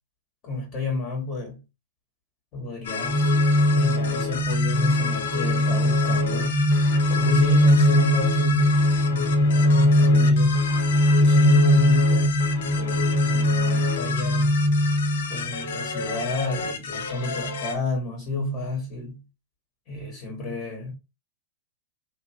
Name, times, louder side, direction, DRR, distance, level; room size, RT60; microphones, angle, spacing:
voice 1, 0.4-1.6 2.5-3.4 3.7-6.6 7.1-8.8 9.1-10.7 11.2-14.7 15.3-19.2 19.9-20.9, equal, 40° left, 1.2 m, -30 dB
sound 1, 2.8-17.7, left 6 dB, 70° left, 0.6 m, -31 dB
sound 2, 3.0-16.1, left 1 dB, 10° right, 0.7 m, -21 dB
3.0 x 2.5 x 2.6 m
hypercardioid pair, 110°, 0 cm